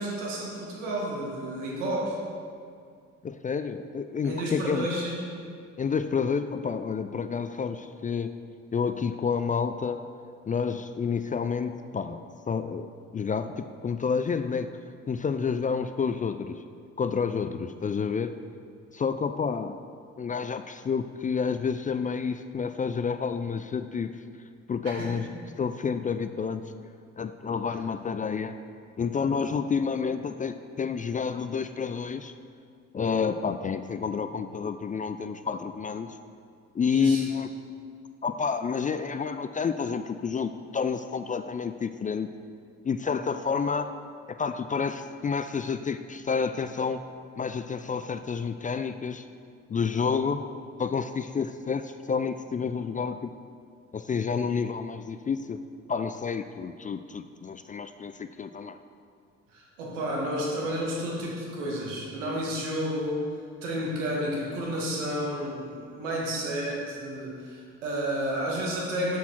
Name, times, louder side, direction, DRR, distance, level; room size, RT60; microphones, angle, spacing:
voice 1, 0.0-2.2 4.2-5.3 24.8-25.2 36.9-37.2 59.5-63.2 63.6-69.2, equal, 85° right, -3 dB, 1.8 m, -31 dB
voice 2, 3.2-4.9 5.8-8.3 8.7-10.0 10.5-12.2 12.5-14.7 15.1-16.6 17.0-18.3 18.9-19.8 20.2-24.1 24.7-25.3 25.6-26.6 27.2-28.5 29.0-32.3 32.9-36.1 36.7-37.5 38.2-42.3 42.8-43.9 44.3-47.0 47.4-49.3 49.7-50.4 50.8-53.3 53.9-55.6 55.9-58.8, left 6 dB, 25° left, 10 dB, 0.4 m, -29 dB
6.9 x 6.3 x 5.9 m, 2.2 s
hypercardioid pair, 50°, 36 cm